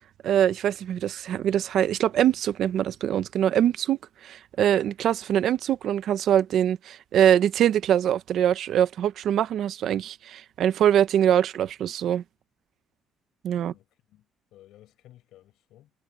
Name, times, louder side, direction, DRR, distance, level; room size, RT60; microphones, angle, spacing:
voice 1, 0.2-12.2 13.4-13.7, right 10 dB, 55° right, 0.8 m, -23 dB
voice 2, 13.5-15.9, left 14 dB, 75° left, 7.8 m, -55 dB
cardioid pair, 165°, 0 cm